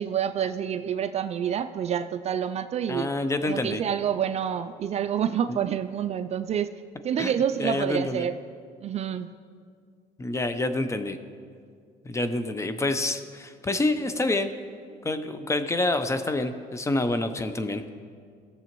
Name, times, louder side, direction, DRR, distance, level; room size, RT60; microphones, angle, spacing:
voice 1, 0.0-3.1 3.4-6.7 7.0-8.4 8.8-9.3, right 9 dB, 40° right, 10 dB, 0.4 m, -28 dB
voice 2, 2.9-3.8 5.5-5.6 7.2-7.3 7.6-8.3 10.2-11.2 12.0-14.5 15.0-17.9, left 2 dB, 20° left, 9 dB, 0.6 m, -27 dB
17.0 x 6.9 x 3.0 m, 2.2 s
cardioid pair, 105°, 16 cm